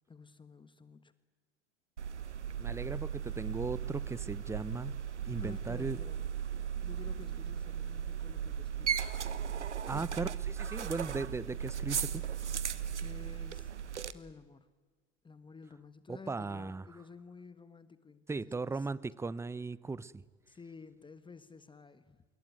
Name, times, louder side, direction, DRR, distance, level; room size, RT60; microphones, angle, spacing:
voice 1, 0.1-1.1 5.4-6.2 6.8-9.0 9.9-10.0 13.0-13.7 14.0-14.7 15.2-18.9 20.5-22.2, left 4 dB, 15° left, 13 dB, 1.3 m, -52 dB
sound 1, 2.0-14.1, right 8 dB, 90° right, 1.2 m, -37 dB
voice 2, 2.6-5.0 5.2-6.0 9.9-12.2 16.1-16.9 18.3-20.2, right 3 dB, 10° right, 21 dB, 0.7 m, -37 dB
26.5 x 22.0 x 9.4 m, 1.4 s
hypercardioid pair, 90°, 34 cm